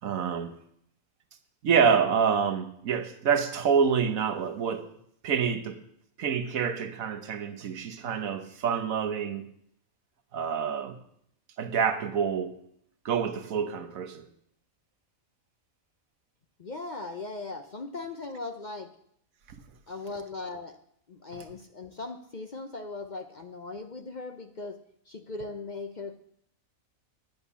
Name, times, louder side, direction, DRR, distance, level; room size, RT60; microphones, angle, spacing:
voice 1, 0.0-0.5 1.6-4.9 5.2-5.8 6.2-9.5 10.3-11.0 11.6-12.6 13.0-14.3, right 6 dB, 80° right, 9 dB, 1.4 m, -27 dB
voice 2, 16.6-18.9 19.9-20.8 21.1-24.8 25.1-26.2, left 3 dB, 45° left, 7 dB, 0.7 m, -38 dB
10.5 x 8.0 x 6.9 m, 0.70 s
omnidirectional pair, 1.4 m